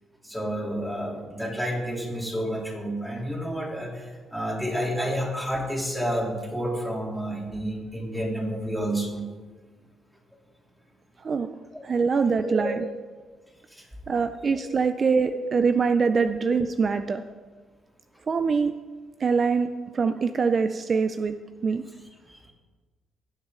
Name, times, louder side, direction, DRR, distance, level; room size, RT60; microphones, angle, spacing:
voice 1, 0.2-9.3 11.7-11.8 12.4-12.7 14.5-14.7 15.2-15.4, equal, ahead, -2 dB, 3.0 m, -30 dB
voice 2, 11.2-11.5 11.8-12.8 14.1-17.2 18.3-18.7 19.2-21.4 21.6-21.8, right 5 dB, 45° right, 9 dB, 0.4 m, -24 dB
18.5 x 6.4 x 3.8 m, 1.3 s
cardioid pair, 90°, 0 cm